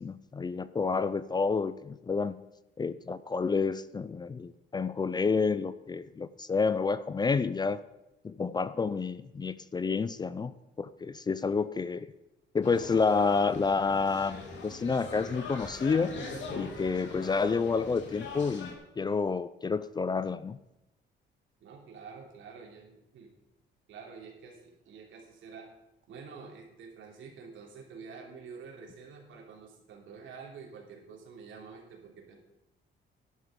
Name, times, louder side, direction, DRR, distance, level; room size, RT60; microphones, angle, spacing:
voice 1, 0.0-2.4 2.8-7.8 8.2-10.5 10.8-12.1 12.5-16.1 16.5-20.6, left 4 dB, 20° left, 15 dB, 0.4 m, -29 dB
sound 1, 12.6-18.7, left 3 dB, 75° left, 3.0 m, -42 dB
voice 2, 21.6-23.3 23.9-25.7 26.1-32.4, right 5 dB, 80° right, 1 dB, 3.2 m, -48 dB
11.5 x 11.0 x 5.2 m, 0.92 s
cardioid pair, 150°, 20 cm